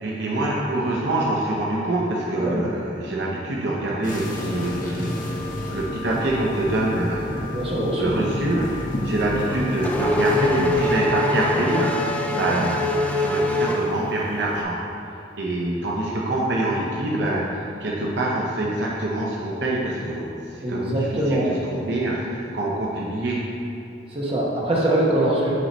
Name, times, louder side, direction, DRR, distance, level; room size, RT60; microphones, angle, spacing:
voice 1, 0.0-7.7 8.0-14.8 15.4-23.4, right 1 dB, 60° right, -4 dB, 0.7 m, -25 dB
sound 1, 4.0-11.0, left 1 dB, 45° left, 0.8 m, -30 dB
voice 2, 7.5-8.2 12.2-12.6 20.6-21.5 24.1-25.5, right 1 dB, 30° right, -5 dB, 1.1 m, -23 dB
Race car auto racing / Accelerating revving vroom, 9.3-14.5, left 2 dB, 5° left, 0.3 m, -24 dB
8.2 x 3.1 x 5.2 m, 2.7 s
head